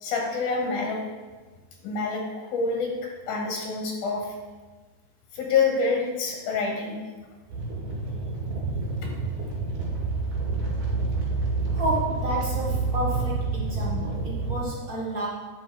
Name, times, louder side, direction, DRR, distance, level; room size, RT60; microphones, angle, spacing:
voice 1, 0.0-1.0 1.8-2.9 3.3-4.3 5.3-7.0, left 4 dB, 80° left, 0 dB, 3.1 m, -27 dB
sound 1, 7.5-14.6, right 3 dB, 65° right, 3.8 m, -28 dB
voice 2, 11.7-15.3, right 1 dB, 40° right, -5 dB, 1.3 m, -30 dB
9.3 x 6.3 x 4.9 m, 1.3 s
omnidirectional pair, 3.5 m